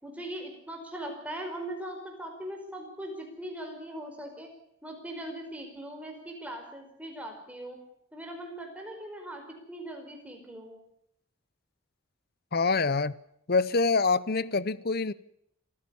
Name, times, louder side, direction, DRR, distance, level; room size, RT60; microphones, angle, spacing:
voice 1, 0.0-4.5 4.8-7.8 8.1-9.4 9.7-10.8, right 1 dB, 5° right, 5.0 m, -40 dB
voice 2, 12.5-13.1 13.5-15.1, left 4 dB, 45° left, 0.7 m, -25 dB
26.5 x 15.0 x 7.1 m
head